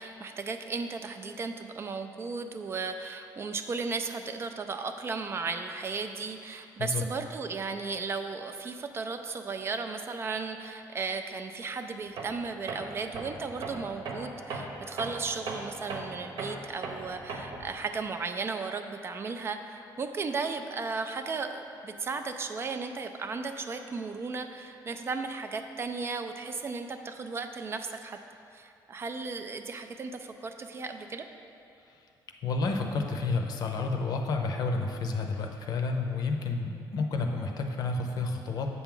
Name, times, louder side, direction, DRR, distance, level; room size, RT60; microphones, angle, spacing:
voice 1, 0.0-28.2 28.5-31.3, right 4 dB, 30° right, 7 dB, 0.4 m, -35 dB
Tools, 12.2-12.4 12.7-17.7, right 3 dB, 65° right, 1.0 m, -38 dB
voice 2, 32.4-38.7, left 3 dB, 55° left, 4 dB, 0.7 m, -30 dB
8.0 x 5.9 x 3.8 m, 2.6 s
cardioid pair, 145°, 8 cm